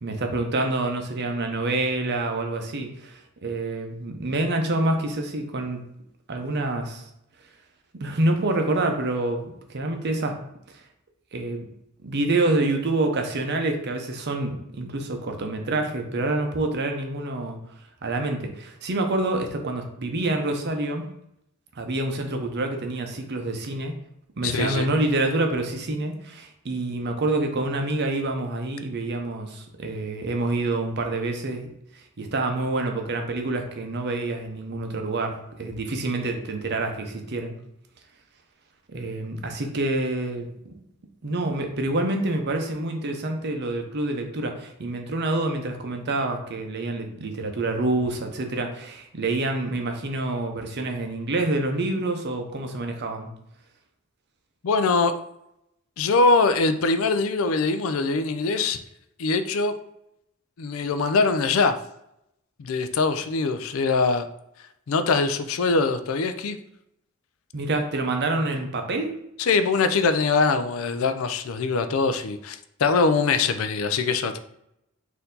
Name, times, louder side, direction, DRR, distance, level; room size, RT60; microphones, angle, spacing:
voice 1, 0.0-5.8 6.3-7.0 7.9-10.4 11.3-11.6 12.0-17.6 18.0-21.1 21.8-24.0 24.4-31.7 32.2-37.6 38.9-40.7 41.2-53.3 67.5-69.1, right 2 dB, 50° right, 4 dB, 0.7 m, -27 dB
voice 2, 24.4-24.9 54.6-55.1 56.0-58.8 59.2-59.7 60.6-61.7 62.6-64.3 64.9-66.6 69.4-74.4, left 4 dB, 70° left, 10 dB, 0.4 m, -22 dB
4.4 x 2.7 x 3.8 m, 0.79 s
head